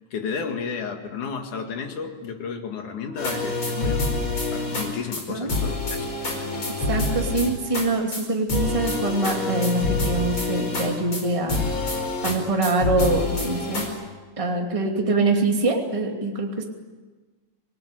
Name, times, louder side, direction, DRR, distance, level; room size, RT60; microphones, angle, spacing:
voice 1, 0.1-4.2 4.5-6.1, left 6 dB, 65° left, 5 dB, 3.4 m, -32 dB
sound 1, 3.2-4.9 5.1-5.2 5.5-7.9 8.1-8.2 8.5-11.2 11.5-12.4 12.6-13.9, left 3 dB, 35° left, 5.8 m, -26 dB
voice 2, 6.9-11.6 12.2-13.9 14.4-16.6, right 2 dB, 10° right, 1 dB, 2.2 m, -24 dB
25.5 x 18.5 x 10.0 m, 1.4 s
omnidirectional pair, 3.8 m